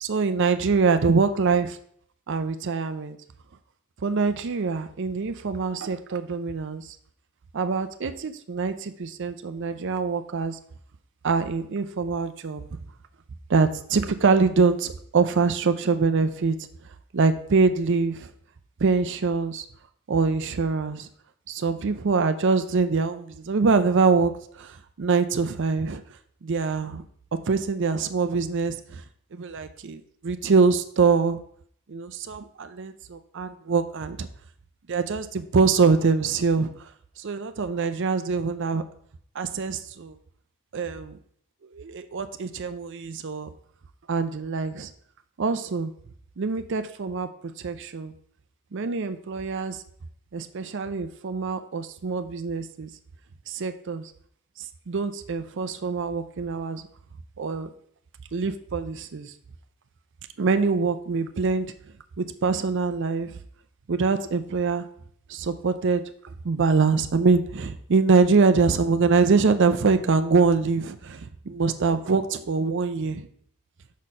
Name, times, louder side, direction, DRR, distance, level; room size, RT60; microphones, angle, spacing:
voice 1, 0.0-1.8 2.3-3.2 4.0-7.0 7.5-10.6 11.2-12.6 13.5-16.6 17.1-18.3 18.8-19.7 20.1-21.1 21.5-26.0 26.4-27.0 27.5-29.0 29.3-31.4 31.9-34.3 34.9-36.9 37.2-38.8 39.3-40.2 40.7-41.2 41.7-43.5 44.1-44.9 45.4-45.9 46.4-47.3 47.6-48.1 48.7-49.8 50.3-52.9 53.5-54.1 54.9-56.9 57.4-57.7 58.3-59.3 60.4-61.7 62.2-63.3 63.9-64.9 65.3-73.3, right 4 dB, 55° right, 10 dB, 0.5 m, -24 dB
6.2 x 4.3 x 5.4 m, 0.63 s
head